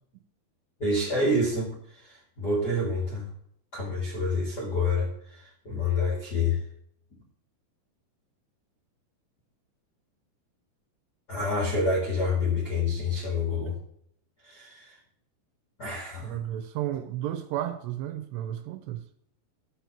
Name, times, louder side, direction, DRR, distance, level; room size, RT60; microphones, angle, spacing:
voice 1, 0.8-3.3 3.7-6.6 11.3-13.8 14.4-14.9 15.8-16.4, left 2 dB, 45° left, -4 dB, 1.2 m, -28 dB
voice 2, 16.2-19.0, right 12 dB, 80° right, 9 dB, 2.7 m, -33 dB
13.0 x 5.9 x 7.2 m, 0.67 s
omnidirectional pair, 5.2 m